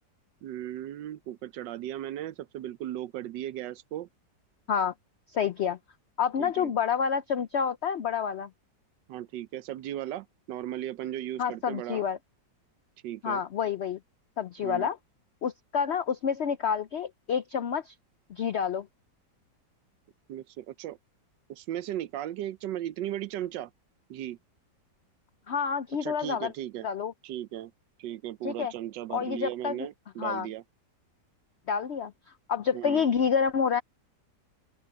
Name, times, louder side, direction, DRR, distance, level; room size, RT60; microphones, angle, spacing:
voice 1, 0.4-4.1 6.4-6.7 9.1-12.0 13.0-13.4 14.6-14.9 20.3-21.0 21.5-23.7 24.1-24.4 26.0-26.9 27.2-27.7 28.0-30.6 32.7-33.0, right 12 dB, 80° right, 1.3 m, -36 dB
voice 2, 5.3-5.8 6.2-8.5 11.4-12.2 13.2-14.0 14.4-15.0 15.4-17.9 18.3-18.9 25.5-26.5 26.8-27.1 28.4-28.7 29.1-29.8 30.2-30.5 31.7-32.1 32.5-33.8, left 7 dB, 90° left, 0.5 m, -28 dB
open air
omnidirectional pair, 1.9 m